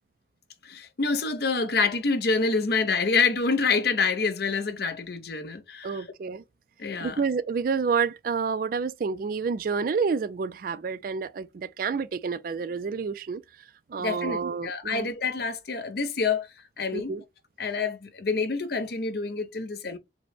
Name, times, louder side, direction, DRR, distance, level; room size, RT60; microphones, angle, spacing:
voice 1, 0.6-6.1 6.8-7.2 14.0-16.5 16.8-17.1 17.6-20.0, left 4 dB, 55° left, 0.6 m, -27 dB
voice 2, 5.8-6.4 7.0-13.4 13.9-15.1 16.9-17.2, right 5 dB, 50° right, 0.3 m, -29 dB
5.0 x 2.1 x 3.3 m
head